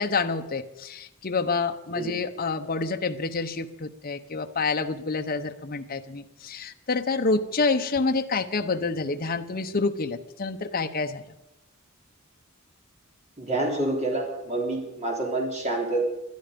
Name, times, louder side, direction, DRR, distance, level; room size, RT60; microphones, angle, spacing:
voice 1, 0.0-11.2, left 4 dB, 45° left, 6 dB, 0.9 m, -28 dB
voice 2, 13.4-16.0, right 2 dB, 35° right, -1 dB, 3.6 m, -28 dB
21.0 x 12.5 x 5.3 m, 0.90 s
head